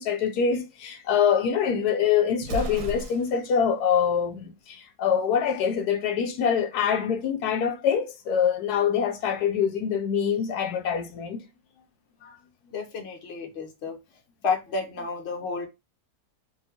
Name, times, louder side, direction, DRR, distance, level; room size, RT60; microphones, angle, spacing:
voice 1, 0.0-11.4 12.2-12.3, left 7 dB, 80° left, 1.1 m, -25 dB
Explosion, 2.4-3.5, right 1 dB, 85° right, 1.2 m, -34 dB
voice 2, 12.7-14.0 14.4-15.7, left 4 dB, 50° left, 0.9 m, -31 dB
3.7 x 2.8 x 2.8 m
omnidirectional pair, 1.7 m